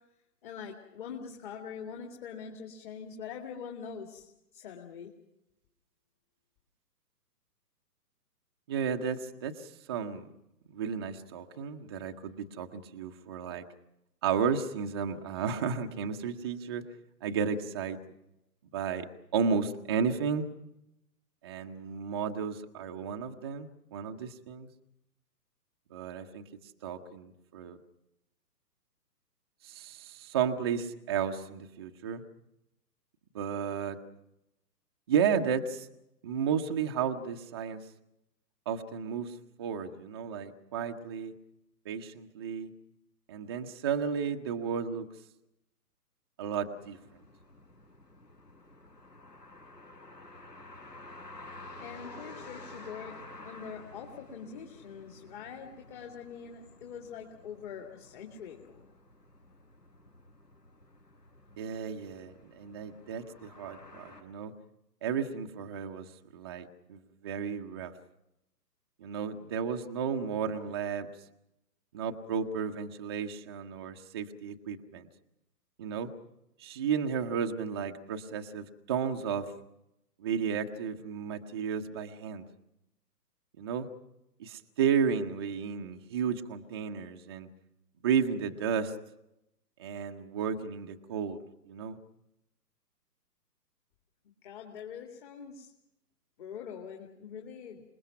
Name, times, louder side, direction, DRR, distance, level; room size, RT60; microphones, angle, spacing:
voice 1, 0.4-5.1 51.8-53.2 53.4-58.9 94.4-95.7 96.4-97.8, left 7 dB, 30° left, 2 dB, 2.2 m, -44 dB
voice 2, 8.7-10.3 10.7-13.6 14.2-16.8 17.2-18.0 18.7-19.1 19.3-20.5 21.4-24.7 25.9-26.5 26.8-27.8 29.6-32.2 33.3-34.0 35.1-35.9 36.2-37.8 38.7-41.3 41.9-42.7 43.3-45.1 46.4-47.0 61.6-64.5 65.0-66.1 66.3-67.9 69.0-71.1 71.9-75.1 75.8-76.1 76.6-79.5 80.2-82.4 83.6-83.9 84.4-87.5 88.0-88.9 89.8-91.4 91.7-92.0, right 7 dB, 15° right, 4 dB, 0.7 m, -33 dB
sound 1, 46.7-64.2, left 2 dB, 80° left, 5.1 m, -51 dB
27.5 x 20.5 x 5.8 m, 0.84 s
figure-of-eight pair, 130°, 49 cm